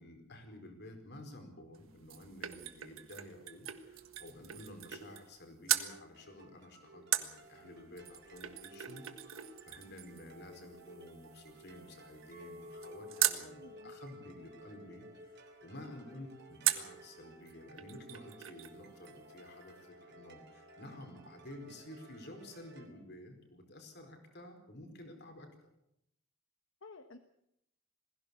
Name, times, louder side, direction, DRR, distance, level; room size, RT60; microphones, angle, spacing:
voice 1, 0.0-25.5, left 1 dB, 55° left, 5 dB, 4.7 m, -52 dB
sound 1, 1.7-5.4 5.7-5.9 7.1-13.5 16.6-17.0 17.5-17.6 17.8-18.8 19.0-19.1, right 12 dB, 85° right, 1.5 m, -38 dB
sound 2, 6.1-22.9, right 2 dB, 55° right, 3.0 m, -57 dB
Chink clink, 12.3-16.7 17.0-17.4, left 2 dB, 40° right, 1.5 m, -54 dB
voice 2, 13.3-13.9 15.9-16.1 26.8-27.2, left 2 dB, 75° left, 8 dB, 1.2 m, -54 dB
21.0 x 16.5 x 8.4 m, 0.78 s
head